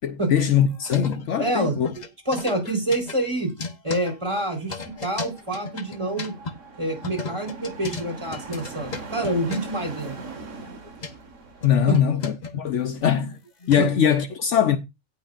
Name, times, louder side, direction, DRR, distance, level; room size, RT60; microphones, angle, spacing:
voice 1, 0.0-1.9 11.6-13.4 13.7-14.8, left 9 dB, 65° left, 1.1 m, -21 dB
sound 1, 0.7-1.5 1.8-6.6 7.0-9.8 10.7-11.1 11.6-14.0, left 4 dB, 35° left, 1.0 m, -36 dB
voice 2, 1.4-1.8 2.3-3.5 3.8-6.3 6.8-10.2 11.9-12.0 13.8-13.9, right 1 dB, 20° right, 4.2 m, -27 dB
sound 2, 4.5-11.9, right 3 dB, 70° right, 1.8 m, -41 dB
17.5 x 6.4 x 2.5 m
omnidirectional pair, 1.4 m